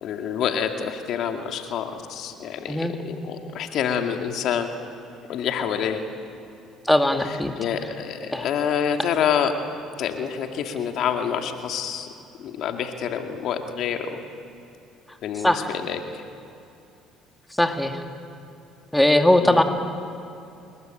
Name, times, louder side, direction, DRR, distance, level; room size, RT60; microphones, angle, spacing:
voice 1, 0.0-4.7 5.3-6.0 7.2-9.5 10.0-12.1 12.4-14.2 15.2-16.2 19.4-19.6, left 8 dB, 65° left, 5 dB, 2.2 m, -27 dB
voice 2, 6.8-7.5 8.3-8.5 15.4-15.7 17.6-18.0 18.9-19.6, left 1 dB, 5° left, 5 dB, 2.4 m, -19 dB
29.5 x 21.0 x 9.1 m, 2.6 s
supercardioid pair, 75°, 0 cm